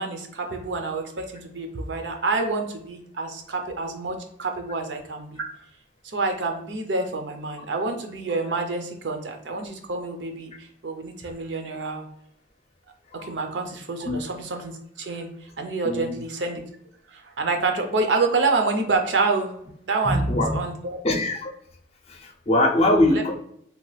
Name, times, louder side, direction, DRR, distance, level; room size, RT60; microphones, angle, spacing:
voice 1, 0.0-5.5 6.1-10.5 10.8-12.0 13.2-14.7 15.0-15.3 15.6-16.6 17.1-19.5 19.8-20.2 20.5-21.0 23.1-23.2, right 3 dB, 90° right, 4 dB, 0.6 m, -27 dB
voice 2, 20.0-20.6 21.0-21.5 22.1-23.4, left 1 dB, 35° left, 2 dB, 0.5 m, -22 dB
2.8 x 2.3 x 3.2 m, 0.71 s
head